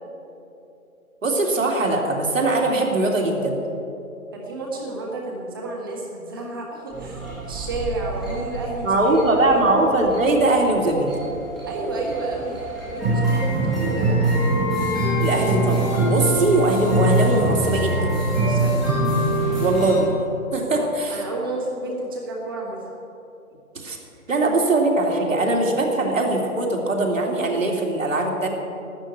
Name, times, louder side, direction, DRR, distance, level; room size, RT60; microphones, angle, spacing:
voice 1, 1.2-3.6 8.8-11.1 15.2-18.2 19.6-20.1 20.5-21.2 23.8-24.0 24.3-28.5, right 2 dB, 60° right, 0 dB, 2.9 m, -21 dB
voice 2, 4.3-9.6 11.7-12.6 12.9-14.3 18.3-18.8 20.6-22.8, right 2 dB, 15° right, -2 dB, 1.5 m, -31 dB
sound 1, 6.9-19.9, right 2 dB, ahead, 1.8 m, -24 dB
Wind instrument woodwind instrument, 14.3-20.1, left 8 dB, 55° left, 3.6 m, -35 dB
12.5 x 7.9 x 10.0 m, 2.8 s
hypercardioid pair, 175°, 43 cm